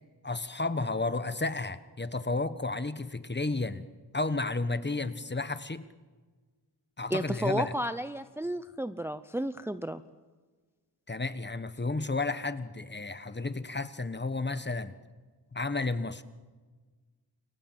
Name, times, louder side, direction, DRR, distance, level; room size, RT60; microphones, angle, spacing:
voice 1, 0.2-3.9 4.1-5.9 7.0-7.7 11.1-15.0 15.5-16.2, left 3 dB, 25° left, 13 dB, 1.3 m, -32 dB
voice 2, 7.1-10.0, right 1 dB, 5° right, 11 dB, 0.7 m, -32 dB
29.5 x 22.5 x 7.5 m, 1.4 s
wide cardioid pair, 115°, 41 cm